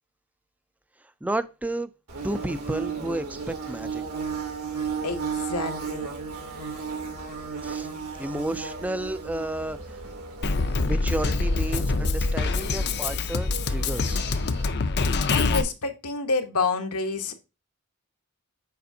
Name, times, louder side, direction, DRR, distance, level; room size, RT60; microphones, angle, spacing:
voice 1, 1.2-1.9 2.2-4.0 7.6-7.9 8.2-9.8 10.9-14.3, right 1 dB, 5° right, 0.4 m, -31 dB
Bird / Buzz, 2.1-14.7, right 5 dB, 75° right, 2.0 m, -35 dB
voice 2, 5.0-6.1 15.3-17.3, left 3 dB, 80° left, 1.0 m, -28 dB
Drum kit, 10.4-15.6, left 3 dB, 50° left, 0.6 m, -25 dB
6.9 x 5.1 x 2.7 m
head